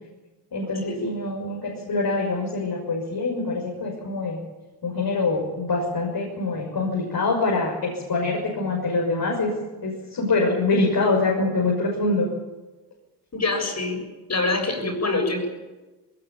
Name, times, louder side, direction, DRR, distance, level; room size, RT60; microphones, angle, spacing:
voice 1, 0.5-4.4 4.8-9.5 9.8-12.3, left 3 dB, 60° left, -2 dB, 6.4 m, -24 dB
voice 2, 13.3-14.0 14.3-15.5, left 3 dB, 40° left, 4 dB, 7.2 m, -25 dB
20.5 x 19.0 x 8.8 m, 1.2 s
cardioid pair, 85°, 43 cm